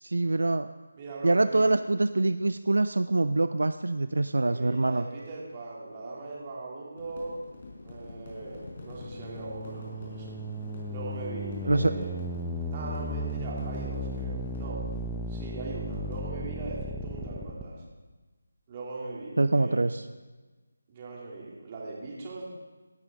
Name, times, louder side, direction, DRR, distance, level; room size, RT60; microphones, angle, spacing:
voice 1, 0.0-0.7 1.2-5.0 11.6-11.9 19.4-20.0, right 2 dB, 70° right, 12 dB, 0.4 m, -25 dB
voice 2, 1.0-1.7 4.4-7.3 7.8-10.3 10.9-12.1 12.7-14.8 15.3-17.8 18.7-19.9 20.9-22.5, right 3 dB, 25° right, -3 dB, 2.8 m, -40 dB
sound 1, 7.0-16.2, left 2 dB, 40° left, 4.7 m, -45 dB
sound 2, 8.9-17.6, equal, ahead, 0.6 m, -35 dB
16.5 x 11.0 x 3.7 m, 1.3 s
figure-of-eight pair, 160°, 0 cm